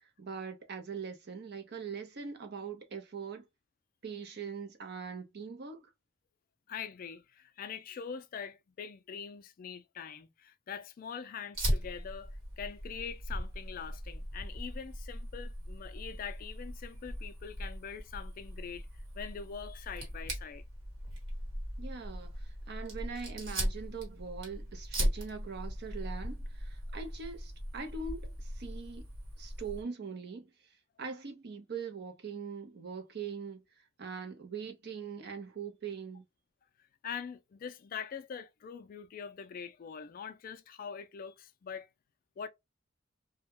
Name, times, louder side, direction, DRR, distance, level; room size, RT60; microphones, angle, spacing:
voice 1, 0.2-3.4 4.0-5.9 21.8-29.1 29.4-30.5 31.0-33.6 34.0-36.2, right 5 dB, 55° right, 0.6 m, -42 dB
voice 2, 6.7-18.9 19.2-20.6 37.0-41.9 42.4-42.5, left 7 dB, 45° left, 0.3 m, -43 dB
Fire, 11.5-29.8, equal, 75° right, 1.3 m, -38 dB
2.2 x 2.1 x 2.8 m
head